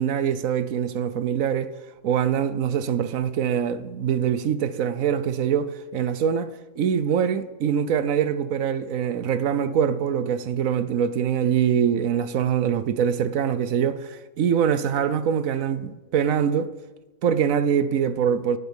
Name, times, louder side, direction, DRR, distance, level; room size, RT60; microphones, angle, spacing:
voice 1, 0.0-1.7 2.0-16.7 17.2-18.6, right 8 dB, 80° right, 1.2 m, -24 dB
17.5 x 8.2 x 7.2 m
omnidirectional pair, 1.4 m